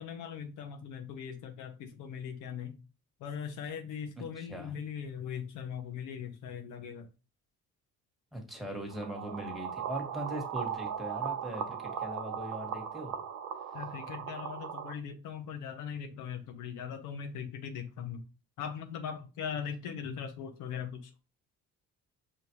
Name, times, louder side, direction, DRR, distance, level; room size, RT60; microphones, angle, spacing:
voice 1, 0.0-2.8 3.2-7.1 13.7-18.2 18.6-21.1, left 7 dB, 85° left, 0.8 m, -40 dB
voice 2, 4.4-4.7 8.3-13.2, equal, ahead, 1.4 m, -40 dB
sound 1, 8.9-14.9, right 8 dB, 70° right, 0.7 m, -38 dB
5.2 x 2.5 x 2.9 m
cardioid pair, 90°, 30 cm